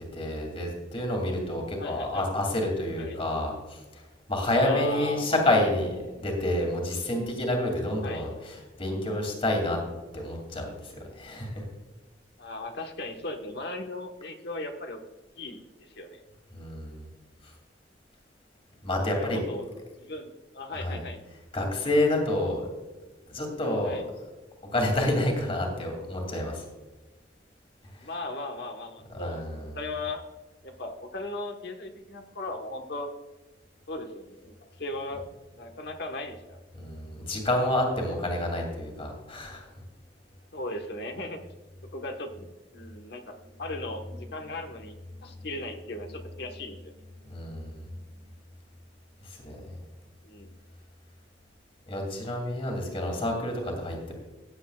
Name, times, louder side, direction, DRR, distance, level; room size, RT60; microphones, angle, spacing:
voice 1, 0.1-4.0 4.3-9.8 10.1-11.6 16.5-17.0 17.4-17.5 18.8-19.4 20.7-21.0 21.5-22.6 23.3-24.0 24.7-26.6 27.8-28.1 29.1-29.7 36.7-39.7 47.3-47.9 49.2-49.7 51.9-54.1, left 1 dB, 30° left, 1 dB, 2.6 m, -29 dB
voice 2, 1.8-2.3 3.0-3.2 4.6-5.7 8.0-8.3 12.4-15.0 15.4-16.2 19.1-19.7 20.0-21.2 23.8-24.0 28.0-30.2 30.6-33.1 33.9-35.2 35.5-36.6 40.5-41.4 41.9-44.9 45.2-46.9 50.2-50.5, left 2 dB, 65° left, 4 dB, 1.3 m, -37 dB
15.5 x 9.8 x 2.4 m, 1.2 s
head